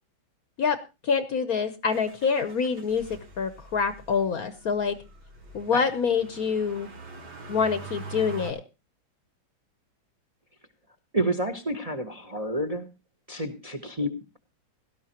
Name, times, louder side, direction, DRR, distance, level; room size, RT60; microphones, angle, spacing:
voice 1, 0.6-5.0 5.5-6.9 7.5-8.6, left 6 dB, 55° left, 12 dB, 1.1 m, -26 dB
Motor vehicle (road), 1.9-8.5, right 2 dB, 80° right, 3.9 m, -44 dB
voice 2, 11.1-12.9 13.3-14.4, right 1 dB, 25° right, 8 dB, 0.9 m, -29 dB
17.5 x 12.5 x 2.9 m, 0.28 s
omnidirectional pair, 2.2 m